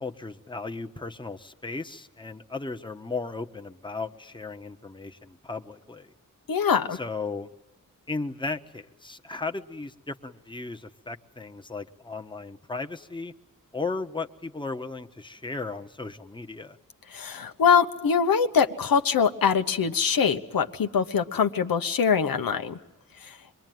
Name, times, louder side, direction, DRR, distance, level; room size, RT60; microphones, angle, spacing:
voice 1, 0.0-6.1 6.9-7.5 8.1-13.3 13.7-16.8, left 3 dB, 15° left, 6 dB, 1.2 m, -35 dB
voice 2, 6.5-7.0 17.1-22.8, left 6 dB, 90° left, 7 dB, 1.2 m, -23 dB
24.5 x 22.5 x 9.3 m, 1.1 s
cardioid pair, 70°, 34 cm